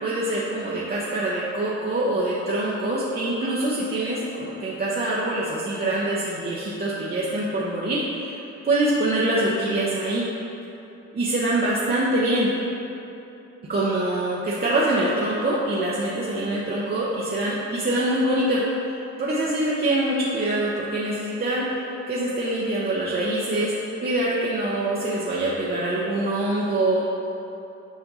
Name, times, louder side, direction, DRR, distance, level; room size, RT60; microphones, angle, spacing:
voice 1, 0.0-10.2 11.1-12.5 13.7-23.7 24.0-27.0, right 1 dB, 30° right, -6 dB, 0.7 m, -24 dB
7.1 x 2.5 x 5.4 m, 2.8 s
cardioid pair, 90°, 30 cm